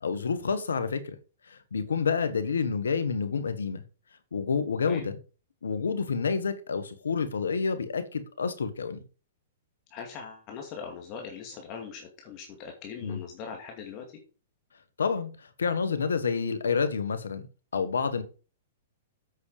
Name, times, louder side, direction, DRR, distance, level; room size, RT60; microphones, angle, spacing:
voice 1, 0.0-1.1 1.5-3.8 4.3-5.2 5.6-9.0 13.0-13.2 15.0-17.5 17.7-18.2, left 5 dB, 90° left, 11 dB, 1.5 m, -29 dB
voice 2, 9.9-14.0, left 6 dB, 40° left, 2 dB, 2.4 m, -41 dB
8.3 x 6.5 x 4.9 m, 0.35 s
hypercardioid pair, 125°, 0 cm